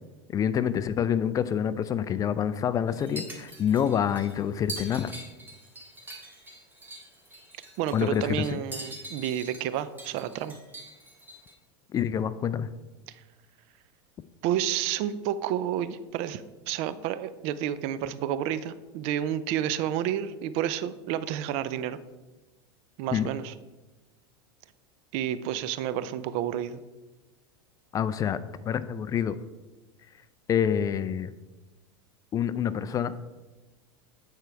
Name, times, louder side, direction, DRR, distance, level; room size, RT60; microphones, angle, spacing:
voice 1, 0.3-5.1 7.9-8.6 11.9-12.7 23.1-23.3 27.9-28.4 28.7-29.4 30.5-31.3 32.3-33.1, left 8 dB, 25° left, 14 dB, 0.4 m, -27 dB
sound 1, 2.9-11.5, right 1 dB, 15° right, 2.0 m, -43 dB
voice 2, 7.8-10.6 14.4-22.0 23.0-23.5 25.1-26.8, right 10 dB, 55° right, 14 dB, 0.5 m, -30 dB
8.9 x 4.5 x 4.6 m, 1.1 s
hypercardioid pair, 110°, 13 cm